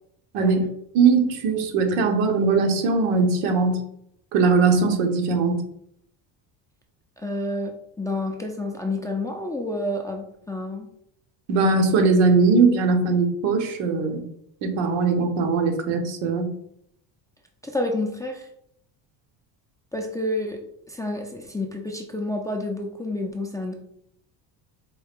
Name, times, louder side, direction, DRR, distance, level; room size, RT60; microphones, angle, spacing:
voice 1, 0.9-3.8 4.3-5.6 11.5-14.2 14.6-16.5, right 4 dB, 90° right, 4 dB, 0.9 m, -20 dB
voice 2, 7.2-10.9 17.6-18.5 19.9-20.6 20.9-23.7, left 1 dB, 10° left, 1 dB, 0.3 m, -29 dB
4.3 x 2.4 x 3.4 m, 0.72 s
cardioid pair, 105°, 47 cm